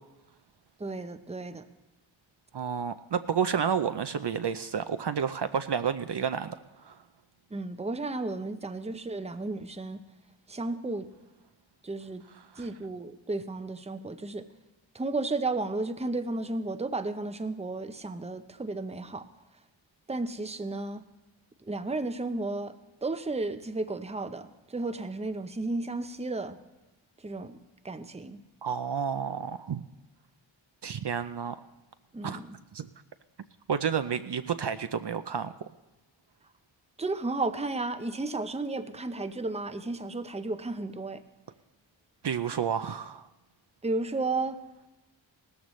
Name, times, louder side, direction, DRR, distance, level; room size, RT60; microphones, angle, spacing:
voice 1, 0.8-1.7 7.5-10.0 10.5-11.1 11.8-12.2 12.6-14.4 14.9-19.3 20.1-21.0 21.7-22.7 23.0-26.6 27.2-27.6 27.8-28.4 32.1-32.6 37.0-41.2 43.8-44.6, right 2 dB, 15° right, 10 dB, 0.6 m, -33 dB
voice 2, 2.5-6.6 6.8-7.0 12.6-12.7 28.6-29.8 30.8-31.5 32.2-32.4 32.7-32.9 33.7-35.5 42.2-43.2, right 7 dB, 60° right, 11 dB, 0.5 m, -30 dB
18.0 x 14.0 x 3.1 m, 1.0 s
wide cardioid pair, 60°, 48 cm